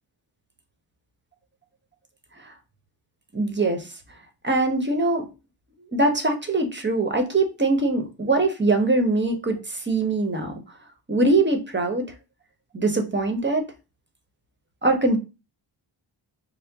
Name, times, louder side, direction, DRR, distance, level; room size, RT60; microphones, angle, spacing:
voice 1, 3.3-3.9 4.4-5.3 5.9-10.6 11.1-12.1 12.7-13.6 14.8-15.2, right 2 dB, 25° right, 1.0 m, -22 dB
4.4 x 2.1 x 3.5 m
cardioid pair, 60°, 46 cm